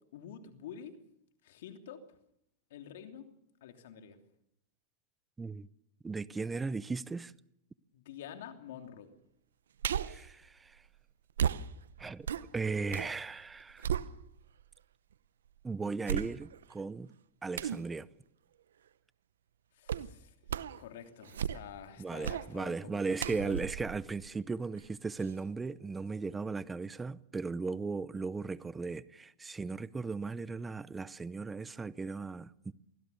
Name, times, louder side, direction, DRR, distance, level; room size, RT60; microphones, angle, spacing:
voice 1, 0.1-1.0 1.4-2.0 2.7-3.3 3.6-4.2 7.9-9.1 19.7-20.4 20.8-23.7, left 9 dB, 70° left, 2.9 m, -48 dB
voice 2, 5.4-5.7 6.0-7.3 10.0-10.8 12.0-12.3 12.5-13.8 15.6-17.1 17.4-18.1 22.0-32.7, right 4 dB, 10° right, 0.7 m, -37 dB
sound 1, 9.8-10.3 11.4-13.1 13.5-14.6 15.1-15.2 16.0-16.7 17.5-17.9 19.9-20.1 20.5-20.8 21.2-21.8 22.2-22.5 23.2-24.9 25.2-25.3, right 8 dB, 90° right, 0.8 m, -35 dB
24.0 x 16.0 x 6.9 m
hypercardioid pair, 130°, 0 cm